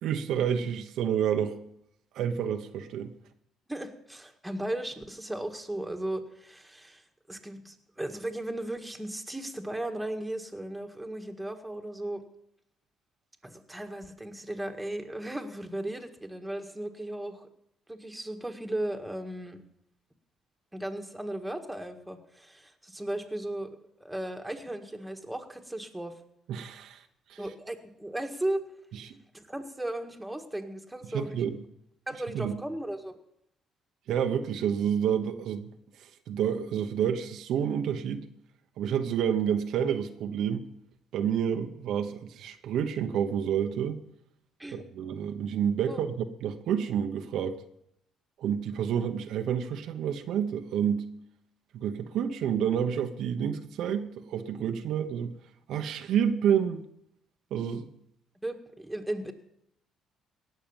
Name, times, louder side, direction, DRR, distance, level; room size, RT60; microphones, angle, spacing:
voice 1, 0.0-1.6 2.1-3.1 26.5-27.0 27.3-27.4 29.1-29.2 31.1-31.6 32.3-32.5 34.1-35.7 36.0-38.3 38.8-40.7 41.1-44.0 44.7-47.6 48.4-51.1 51.7-55.3 55.7-56.8 57.5-57.9, right 8 dB, 75° right, 6 dB, 1.0 m, -29 dB
voice 2, 3.7-12.2 13.4-17.5 17.9-19.6 20.7-26.2 27.4-28.7 29.3-31.4 32.1-33.2 44.6-44.8 45.9-46.0 58.4-59.3, right 1 dB, 5° right, 4 dB, 1.8 m, -36 dB
18.0 x 6.7 x 7.2 m, 0.75 s
cardioid pair, 85°, 0 cm